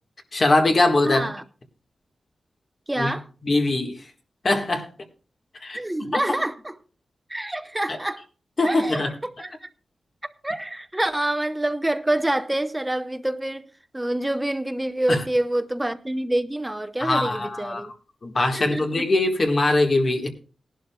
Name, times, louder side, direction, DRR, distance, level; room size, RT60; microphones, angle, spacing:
voice 1, 0.3-1.3 3.0-3.1 3.4-4.0 4.4-4.9 5.6-6.1 8.6-9.1 15.1-15.2 17.0-17.9 18.2-20.3, left 2 dB, 35° left, 1.6 m, -22 dB
voice 2, 1.0-1.4 2.9-3.3 5.7-6.8 7.3-8.2 8.6-9.7 10.4-13.7 13.9-17.9 18.5-19.0, right 1 dB, 10° right, 0.7 m, -27 dB
18.5 x 11.5 x 2.3 m
wide cardioid pair, 180°, 0 cm